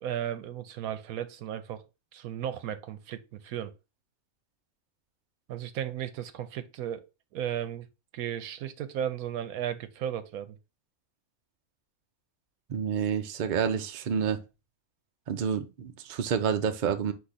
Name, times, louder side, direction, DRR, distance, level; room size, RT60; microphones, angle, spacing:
voice 1, 0.0-1.9 2.1-3.7 5.5-7.0 7.3-7.9 8.1-10.6, right 10 dB, 80° right, 1.1 m, -35 dB
voice 2, 12.7-14.4 15.3-17.1, right 7 dB, 55° right, 0.5 m, -29 dB
4.7 x 2.7 x 4.0 m
omnidirectional pair, 1.5 m